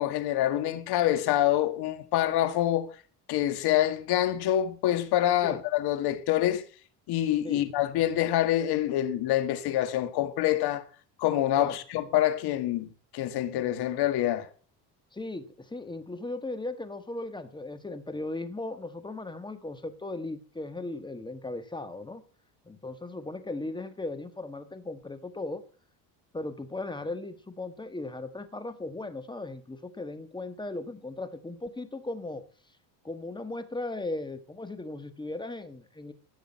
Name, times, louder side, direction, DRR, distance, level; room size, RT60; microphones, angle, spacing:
voice 1, 0.0-2.9 3.3-6.6 7.1-10.8 11.2-12.9 13.1-14.5, left 12 dB, 65° left, 1.8 m, -26 dB
voice 2, 15.1-22.2 22.6-25.6 26.3-32.4 33.0-36.1, left 2 dB, 10° left, 1.4 m, -37 dB
15.5 x 6.4 x 7.4 m
cardioid pair, 120°, 41 cm